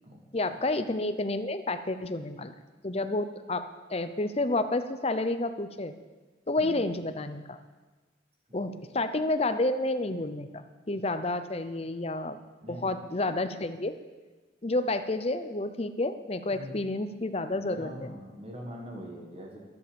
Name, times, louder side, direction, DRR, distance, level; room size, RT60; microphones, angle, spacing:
voice 1, 0.3-2.5 2.8-5.9 6.5-7.6 8.5-12.4 12.7-14.0 14.6-18.1, left 2 dB, 30° left, 10 dB, 0.7 m, -30 dB
voice 2, 6.6-7.0 8.6-8.8 12.6-13.0 16.5-16.7 17.5-19.6, equal, 30° right, 0 dB, 1.7 m, -43 dB
11.0 x 11.0 x 7.0 m, 1.3 s
head